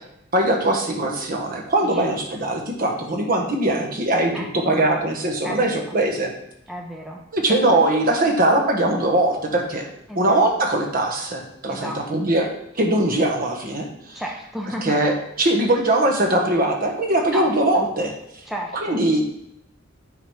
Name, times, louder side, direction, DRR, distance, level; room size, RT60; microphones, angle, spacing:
voice 1, 0.3-6.3 7.3-9.9 10.1-12.5 12.7-14.2 14.8-18.1 18.8-19.2, right 1 dB, 45° right, 1 dB, 1.3 m, -21 dB
voice 2, 4.3-4.9 5.4-6.0 6.7-7.2 7.7-7.8 10.1-10.4 11.7-12.0 14.1-15.0 17.3-17.9 18.5-19.0, equal, ahead, 0 dB, 0.6 m, -33 dB
9.3 x 4.0 x 4.9 m, 0.78 s
head